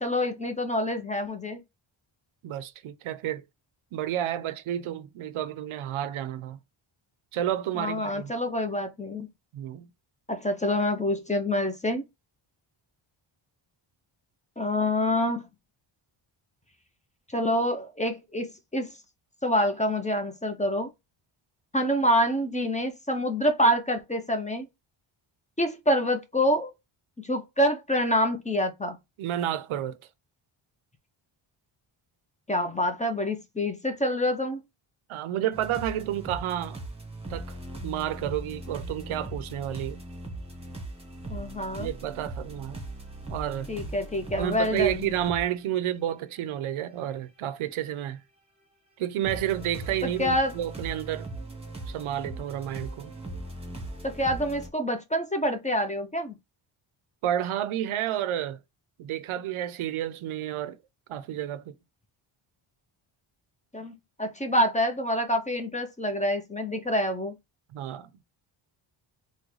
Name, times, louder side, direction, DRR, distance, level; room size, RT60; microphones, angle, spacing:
voice 1, 0.0-1.6 7.8-9.3 10.3-12.0 14.6-15.4 17.3-18.9 19.4-20.9 21.7-24.7 25.6-26.7 27.2-29.0 32.5-34.6 41.3-41.9 43.7-45.1 50.0-50.5 54.0-56.3 63.7-67.3, equal, 15° left, 0.5 m, -26 dB
voice 2, 2.4-3.4 3.9-6.6 7.3-8.3 9.5-9.9 29.2-30.0 35.1-36.8 37.3-37.6 37.8-40.0 41.8-42.9 43.3-43.7 44.4-48.2 49.0-51.3 51.9-53.1 57.2-58.6 59.0-60.8 61.1-61.8 67.7-68.1, right 11 dB, 75° right, 0.6 m, -30 dB
sound 1, 35.5-45.4 46.1-46.2 47.1-47.2 49.2-54.7, right 2 dB, 10° right, 1.1 m, -39 dB
3.7 x 2.2 x 3.0 m
cardioid pair, 95°, 50 cm